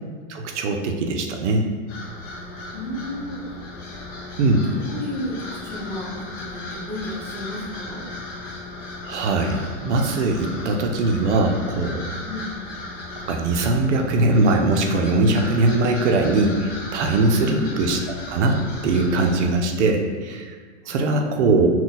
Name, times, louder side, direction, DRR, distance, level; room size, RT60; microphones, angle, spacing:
voice 1, 0.3-1.7 4.4-4.7 9.0-12.1 13.2-18.0 18.3-20.5 20.9-21.7, right 2 dB, 75° right, 3 dB, 0.6 m, -21 dB
sound 1, 1.9-19.5, left 2 dB, 25° left, 0.6 m, -36 dB
voice 2, 2.7-3.4 4.6-5.3 5.6-6.2 6.5-8.0 12.2-12.6 17.4-17.7 20.8-21.6, left 1 dB, 5° left, -9 dB, 1.3 m, -33 dB
3.9 x 2.3 x 3.9 m, 1.5 s
hypercardioid pair, 125°, 35 cm